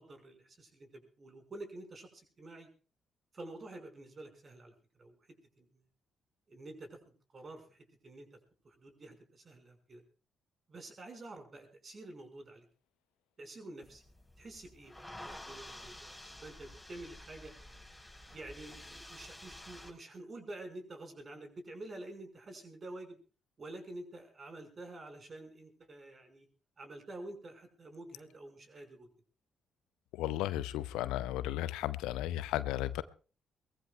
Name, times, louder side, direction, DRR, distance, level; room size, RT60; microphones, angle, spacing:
voice 1, 0.0-2.7 3.3-4.7 5.0-5.2 5.6-5.7 6.5-8.4 8.6-10.0 10.7-12.7 13.4-14.0 14.4-17.5 18.3-23.2 23.6-26.5 26.8-29.1, right 2 dB, 40° right, 5 dB, 5.6 m, -49 dB
sound 1, 13.8-19.9, left 1 dB, 5° left, 5.7 m, -50 dB
voice 2, 30.1-33.0, left 14 dB, 70° left, 16 dB, 0.7 m, -34 dB
23.0 x 20.5 x 2.4 m, 0.38 s
figure-of-eight pair, 40°, 0 cm